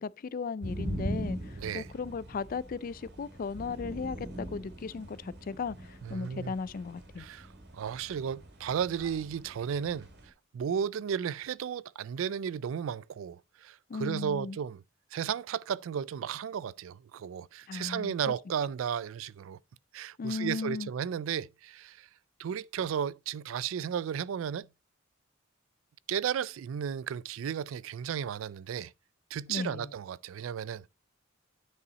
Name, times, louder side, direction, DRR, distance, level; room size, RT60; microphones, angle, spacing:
voice 1, 0.0-7.3 13.9-14.6 17.7-18.1 20.2-20.9 29.5-29.9, left 4 dB, 45° left, 0.3 m, -36 dB
sound 1, 0.6-10.3, right 1 dB, 60° right, 2.4 m, -42 dB
voice 2, 1.6-1.9 6.0-6.5 7.2-7.5 7.7-10.1 10.5-14.8 15.1-19.6 19.9-22.1 22.4-24.7 26.1-28.9 29.3-30.9, right 8 dB, 75° right, 0.3 m, -34 dB
9.6 x 5.5 x 4.0 m
head